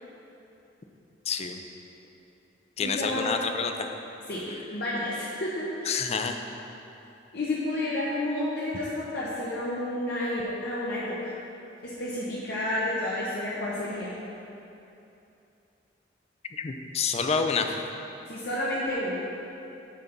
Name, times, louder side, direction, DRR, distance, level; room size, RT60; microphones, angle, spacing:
voice 1, 1.3-1.6 2.8-3.9 5.9-6.4 16.6-17.8, left 5 dB, 35° left, 6 dB, 0.4 m, -28 dB
voice 2, 2.8-3.4 4.3-4.4 4.7-6.0 7.3-11.3 11.8-14.1 18.3-19.2, left 1 dB, 60° left, -8 dB, 0.9 m, -30 dB
7.2 x 3.9 x 5.9 m, 2.8 s
head